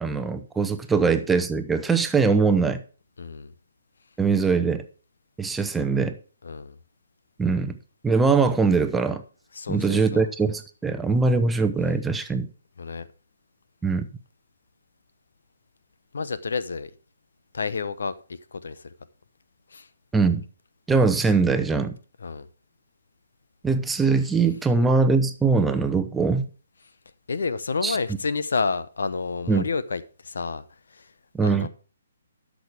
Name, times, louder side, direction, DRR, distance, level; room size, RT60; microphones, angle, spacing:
voice 1, 0.0-2.8 4.2-4.8 5.4-6.2 7.4-7.8 8.0-9.2 9.7-12.5 13.8-14.1 20.1-20.4 20.9-22.0 23.6-26.5 27.8-28.0 29.5-29.6 31.3-31.7, right 4 dB, 5° right, 0.8 m, -22 dB
voice 2, 3.2-3.5 6.4-6.7 9.5-10.3 12.8-13.1 16.1-16.9 17.5-18.9 19.7-19.9 22.2-22.5 27.3-30.6 30.9-31.1 31.4-31.7, left 4 dB, 70° left, 0.9 m, -30 dB
12.0 x 6.3 x 4.8 m
hypercardioid pair, 140°, 0 cm